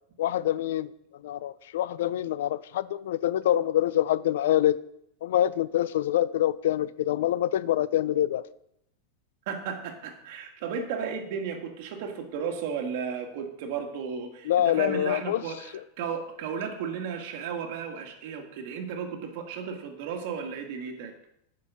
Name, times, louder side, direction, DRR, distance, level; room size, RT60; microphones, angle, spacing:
voice 1, 0.2-0.9 1.2-4.8 5.2-8.4 14.5-15.4, left 12 dB, 80° left, 18 dB, 0.4 m, -25 dB
voice 2, 9.5-21.1, right 6 dB, 60° right, 4 dB, 1.7 m, -34 dB
8.4 x 5.4 x 6.2 m, 0.77 s
supercardioid pair, 135°, 0 cm